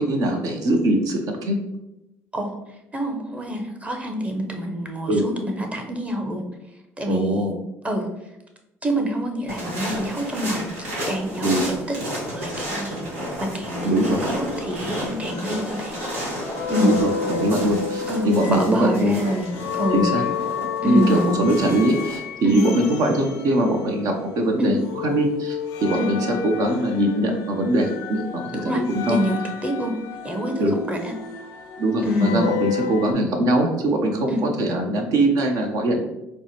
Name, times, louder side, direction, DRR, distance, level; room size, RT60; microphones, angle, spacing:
voice 1, 0.0-1.6 5.1-5.2 7.1-7.6 11.4-11.6 13.8-14.2 16.8-19.1 19.9-20.2 20.8-28.7 29.1-29.2 30.6-30.7 31.8-36.0, right 1 dB, 60° right, 3 dB, 0.6 m, -22 dB
voice 2, 2.9-6.4 7.0-7.5 7.8-8.1 8.8-13.0 13.4-16.0 16.7-16.9 18.1-20.1 20.8-21.2 22.4-22.6 24.6-24.7 25.9-26.1 28.6-28.8 29.1-29.9 30.2-31.1 32.0-32.4 34.3-34.4, equal, 15° right, 3 dB, 0.8 m, -26 dB
sound 1, 9.5-22.2, equal, 85° right, 1.1 m, -31 dB
sound 2, 14.7-24.4 24.8-33.1, left 8 dB, 70° left, 0.4 m, -32 dB
4.4 x 2.1 x 2.9 m, 0.91 s
hypercardioid pair, 60°, 7 cm